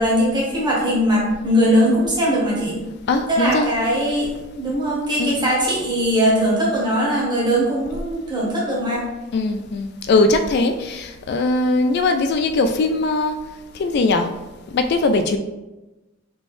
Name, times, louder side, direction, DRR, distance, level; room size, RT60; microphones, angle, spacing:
voice 1, 0.0-2.8 3.3-9.0, equal, 20° right, -5 dB, 1.3 m, -20 dB
voice 2, 3.1-3.7 5.2-5.5 9.3-13.4 13.7-14.3 14.7-15.4, left 2 dB, 55° left, 7 dB, 0.3 m, -20 dB
4.0 x 3.2 x 3.6 m, 1.1 s
head